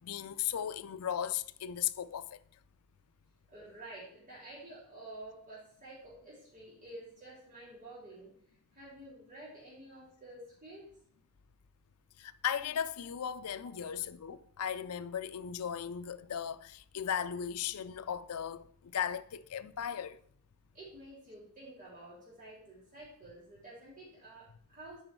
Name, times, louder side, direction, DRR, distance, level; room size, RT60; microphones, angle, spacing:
voice 1, 0.0-2.4 12.2-20.2, left 9 dB, 90° left, 0.5 m, -37 dB
voice 2, 3.5-8.3 8.7-10.9 13.6-13.7 20.7-25.0, right 1 dB, 40° right, 4.1 m, -50 dB
9.0 x 5.5 x 4.6 m
head